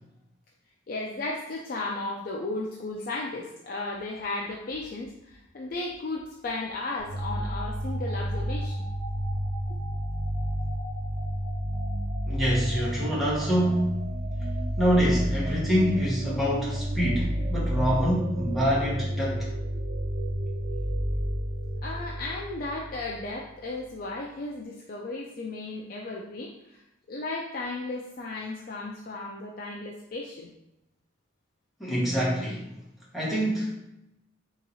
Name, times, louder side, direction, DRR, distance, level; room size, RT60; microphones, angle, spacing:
voice 1, 0.9-8.8 21.8-26.8 27.1-30.5, left 2 dB, 45° left, -1 dB, 0.4 m, -35 dB
sound 1, 7.0-23.3, equal, 90° right, 0.7 m, -30 dB
voice 2, 12.3-14.0 14.8-19.5 31.8-32.7 33.1-33.7, equal, ahead, -6 dB, 1.0 m, -26 dB
3.6 x 2.9 x 4.1 m, 0.88 s
head